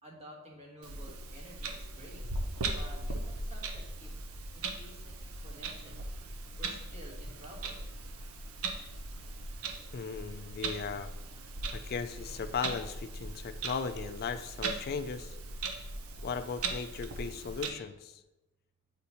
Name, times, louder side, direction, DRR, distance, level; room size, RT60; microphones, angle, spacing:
voice 1, 0.0-2.2 2.6-4.2 4.5-6.1 6.6-7.8, equal, 30° right, -1 dB, 1.4 m, -52 dB
Clock, 0.8-17.7, right 3 dB, 85° right, 0.7 m, -39 dB
voice 2, 9.9-11.1 11.7-15.4 16.2-18.2, left 5 dB, 45° left, 11 dB, 0.4 m, -37 dB
8.0 x 4.1 x 2.9 m, 1.0 s
head